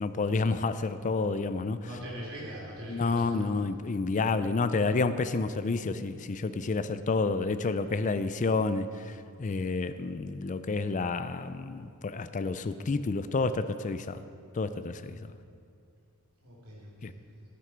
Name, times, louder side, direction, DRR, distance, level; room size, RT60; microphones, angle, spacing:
voice 1, 0.0-1.9 2.9-14.2 14.5-15.2 17.0-17.1, left 3 dB, 35° left, 12 dB, 0.4 m, -29 dB
voice 2, 1.8-3.4 15.1-15.2 16.4-17.4, equal, 70° right, -5 dB, 3.2 m, -42 dB
13.0 x 9.9 x 4.5 m, 2.3 s
head